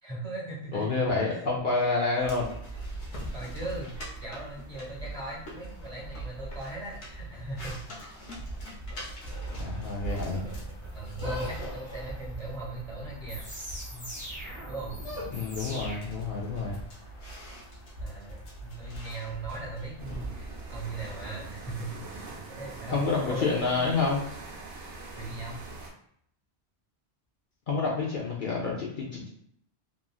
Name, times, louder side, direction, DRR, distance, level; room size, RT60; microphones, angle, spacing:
voice 1, 0.0-0.9 1.3-1.5 3.1-3.9 4.2-7.8 10.9-13.5 13.9-14.1 14.7-14.9 18.0-23.9 25.2-25.6, right 2 dB, 40° right, -3 dB, 0.7 m, -39 dB
voice 2, 0.7-2.5 9.6-10.4 15.3-16.8 22.9-24.2 27.7-29.3, left 3 dB, 60° left, -3 dB, 0.6 m, -28 dB
sound 1, 2.2-21.8, right 1 dB, 85° left, 1.1 m, -40 dB
sound 2, 9.8-16.0, right 1 dB, 5° left, 0.9 m, -43 dB
sound 3, 20.0-25.9, right 3 dB, 85° right, 0.9 m, -43 dB
3.0 x 2.4 x 2.3 m, 0.68 s
omnidirectional pair, 1.2 m